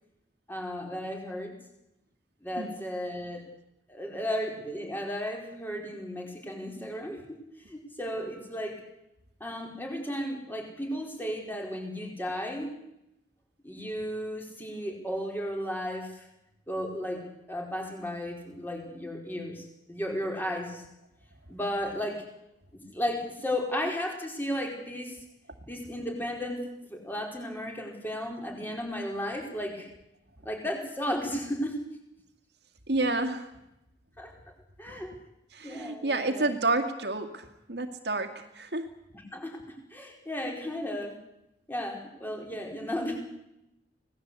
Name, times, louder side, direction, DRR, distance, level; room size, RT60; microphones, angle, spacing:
voice 1, 0.5-1.6 2.4-3.5 3.9-7.4 7.7-8.8 9.4-12.7 13.6-16.1 16.7-20.8 21.5-22.2 22.7-25.2 25.7-29.9 30.4-31.8 34.2-34.3 34.8-35.2 35.6-36.5 39.1-41.2 41.7-43.2, equal, 10° left, 1 dB, 4.8 m, -34 dB
voice 2, 32.9-33.5 34.9-35.0 35.5-38.9, right 2 dB, 65° right, 6 dB, 2.2 m, -30 dB
25.5 x 18.5 x 8.3 m, 0.86 s
head